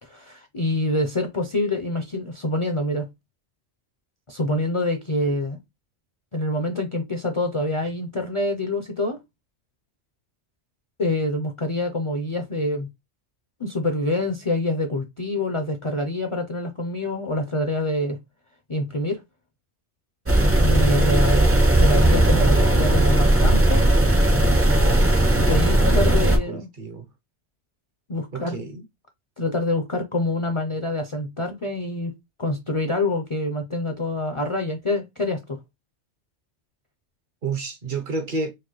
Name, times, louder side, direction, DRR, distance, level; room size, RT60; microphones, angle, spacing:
voice 1, 0.0-3.1 4.3-5.6 6.3-9.2 11.0-12.9 13.6-18.2 18.7-19.2 20.6-21.5 21.8-23.8 25.4-26.7 28.1-28.6 29.4-32.1 32.4-35.6, left 1 dB, 45° left, 0.4 m, -26 dB
sound 1, 20.3-26.4, right 1 dB, 20° right, 0.4 m, -17 dB
voice 2, 25.8-27.1 28.3-28.9 37.4-38.5, right 3 dB, 55° right, 0.7 m, -31 dB
4.7 x 2.1 x 3.0 m
omnidirectional pair, 1.2 m